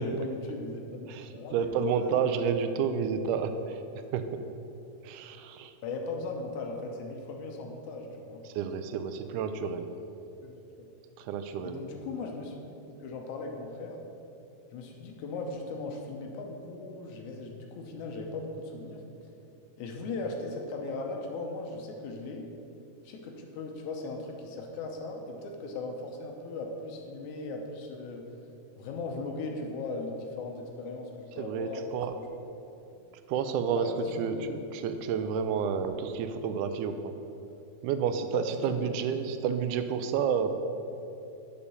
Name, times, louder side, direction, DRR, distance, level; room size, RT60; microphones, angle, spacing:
voice 1, 0.0-2.5 5.8-8.4 10.4-10.6 11.6-12.8 13.0-14.0 14.7-19.0 19.8-22.5 23.0-28.3 28.8-31.1 31.4-31.8 32.2-32.3 33.8-34.4 38.3-38.8, left 3 dB, 75° left, 2 dB, 2.2 m, -38 dB
voice 2, 1.1-3.8 4.1-4.3 5.0-5.7 8.5-9.9 11.2-11.8 31.4-32.1 33.3-33.9 34.2-37.1 37.8-40.6, right 7 dB, 85° right, 9 dB, 2.0 m, -30 dB
6.9 x 5.4 x 7.1 m, 2.8 s
omnidirectional pair, 3.6 m